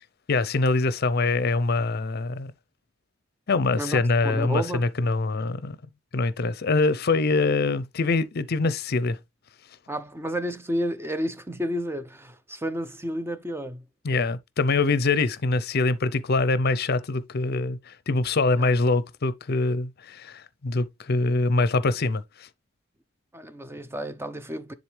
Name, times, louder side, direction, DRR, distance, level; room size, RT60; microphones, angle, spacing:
voice 1, 0.3-2.5 3.5-5.8 6.1-9.2 14.0-22.5, left 3 dB, 55° left, 0.6 m, -24 dB
voice 2, 3.8-4.9 9.9-13.8 18.6-18.7 23.3-24.7, equal, 10° right, 0.6 m, -31 dB
10.0 x 3.9 x 3.3 m
head